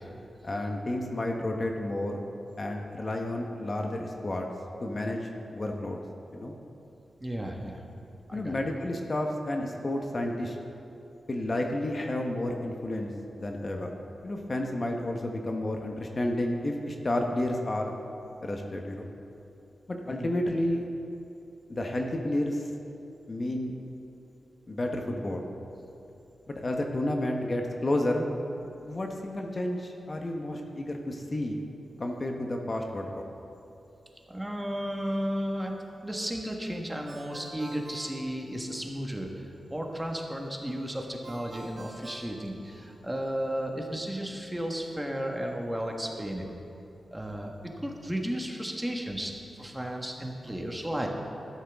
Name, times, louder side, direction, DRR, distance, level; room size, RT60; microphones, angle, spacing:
voice 1, 0.4-2.3 2.6-4.5 4.8-6.0 6.3-6.5 8.3-10.6 11.3-13.9 14.2-17.9 18.4-19.1 19.9-20.8 21.7-22.7 23.3-23.7 24.7-25.5 26.5-28.3 28.9-31.6 32.0-33.1, left 1 dB, 40° left, 2 dB, 1.1 m, -31 dB
voice 2, 7.2-7.8 8.3-8.6 20.0-20.3 34.3-35.8 36.0-46.5 47.1-47.5 47.8-51.1, equal, 10° right, 1 dB, 1.5 m, -34 dB
Ringtone, 37.1-39.0 41.2-43.2, right 2 dB, 60° right, 2.4 m, -47 dB
13.0 x 12.0 x 3.6 m, 2.9 s
cardioid pair, 70°, 0 cm